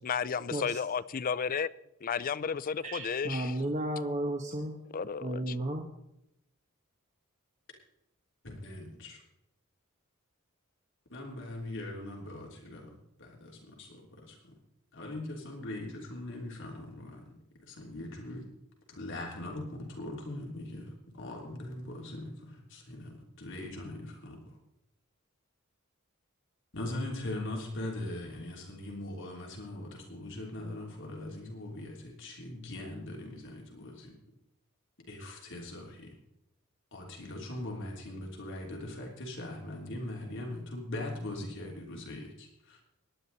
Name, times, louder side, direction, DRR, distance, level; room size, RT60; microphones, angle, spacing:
voice 1, 0.0-1.7 2.0-3.5 4.9-5.6, left 6 dB, 40° left, 0.5 m, -33 dB
voice 2, 2.8-4.8 5.2-5.9, right 1 dB, 35° right, 1.1 m, -33 dB
voice 3, 8.6-9.2 11.1-12.9 13.2-14.5 14.9-17.3 17.7-18.4 18.9-24.6 26.7-34.1 35.1-36.2 36.9-42.8, left 1 dB, 60° left, 3.2 m, -41 dB
18.0 x 11.0 x 4.1 m
head